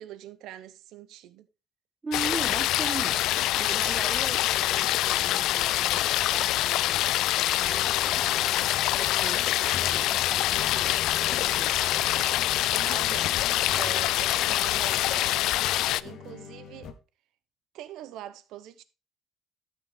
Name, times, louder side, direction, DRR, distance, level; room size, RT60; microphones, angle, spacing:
voice 1, 0.0-1.5 12.7-13.4 13.7-15.7 16.0-16.9 17.7-18.8, right 12 dB, 80° right, 0.9 m, -43 dB
voice 2, 2.0-11.8, right 4 dB, 20° right, 0.4 m, -40 dB
sound 1, 2.1-16.0, left 15 dB, 90° left, 0.4 m, -25 dB
sound 2, 7.6-16.9, left 6 dB, 55° left, 1.1 m, -42 dB
12.5 x 6.3 x 3.8 m
cardioid pair, 175°, 0 cm